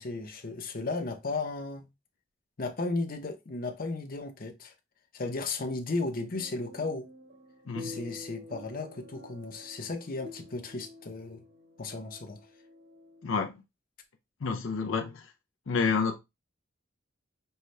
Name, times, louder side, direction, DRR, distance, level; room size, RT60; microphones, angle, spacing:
voice 1, 0.0-1.9 2.6-4.7 5.1-7.1 7.8-11.4 11.8-12.4, left 3 dB, 45° left, 0.8 m, -35 dB
sound 1, 6.3-13.4, left 1 dB, 60° right, 1.3 m, -48 dB
voice 2, 13.2-13.5 14.4-15.3 15.7-16.2, left 5 dB, 85° left, 0.5 m, -29 dB
5.5 x 2.2 x 3.2 m
head